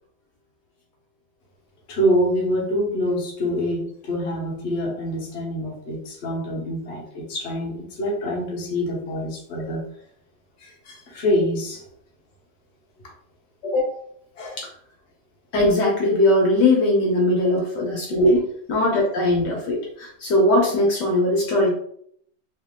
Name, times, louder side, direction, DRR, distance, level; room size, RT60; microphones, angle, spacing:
voice 1, 1.9-9.8 10.6-11.8 14.4-14.6 17.5-17.6 18.3-18.4, equal, 40° left, -4 dB, 1.2 m, -26 dB
voice 2, 13.6-14.0 14.6-14.7 15.5-21.7, left 1 dB, 65° left, -2 dB, 1.4 m, -20 dB
3.2 x 2.8 x 3.6 m, 0.66 s
omnidirectional pair, 2.1 m